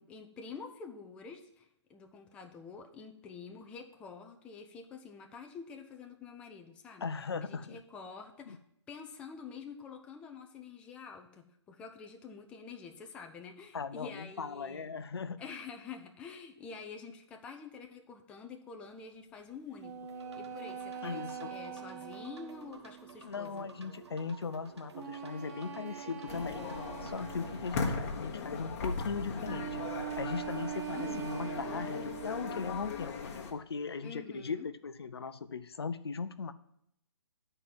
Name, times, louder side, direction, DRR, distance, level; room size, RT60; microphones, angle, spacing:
voice 1, 0.0-7.1 7.4-8.6 8.9-14.9 15.4-23.7 29.4-29.7 30.9-31.3 34.0-34.7, left 5 dB, 5° left, 4 dB, 0.4 m, -48 dB
voice 2, 7.0-7.8 8.5-8.6 13.7-15.4 21.0-21.5 23.2-26.7 27.0-29.8 30.1-36.5, left 5 dB, 60° left, 12 dB, 0.6 m, -38 dB
sound 1, 19.8-23.3 24.9-27.8 29.4-32.7, right 9 dB, 35° right, 1.1 m, -42 dB
sound 2, 20.1-27.8, right 5 dB, 70° right, 1.5 m, -53 dB
sound 3, 26.3-33.5, left 4 dB, 30° left, 1.2 m, -38 dB
10.0 x 4.4 x 7.4 m, 0.75 s
figure-of-eight pair, 135°, 15 cm